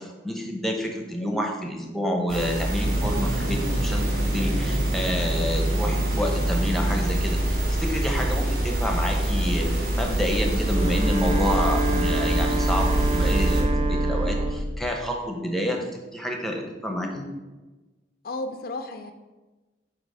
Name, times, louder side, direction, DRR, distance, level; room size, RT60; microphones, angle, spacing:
voice 1, 0.0-9.7 10.0-17.3, equal, ahead, 2 dB, 0.8 m, -29 dB
sound 1, 2.3-13.6, right 1 dB, 55° right, 1.7 m, -25 dB
sound 2, 2.8-14.5, right 2 dB, 80° right, 0.5 m, -30 dB
voice 2, 5.8-6.2 18.2-19.1, left 2 dB, 55° left, 6 dB, 0.4 m, -34 dB
Wind instrument woodwind instrument, 10.7-14.8, right 2 dB, 30° right, 0.3 m, -29 dB
8.0 x 2.9 x 5.4 m, 1.2 s
head